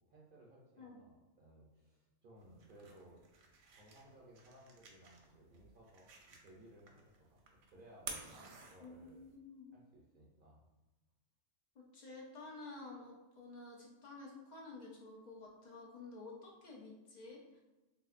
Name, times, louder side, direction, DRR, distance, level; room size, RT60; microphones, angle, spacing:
voice 1, 0.1-3.2 3.7-6.1 6.4-7.4 7.7-9.3 9.7-10.6, right 1 dB, 55° right, -4 dB, 0.7 m, -60 dB
sound 1, 2.4-9.3, right 4 dB, 80° right, 0.9 m, -53 dB
voice 2, 8.8-9.8 11.8-17.6, left 3 dB, 60° left, -2 dB, 0.4 m, -52 dB
3.4 x 2.6 x 2.4 m, 1.1 s
omnidirectional pair, 1.2 m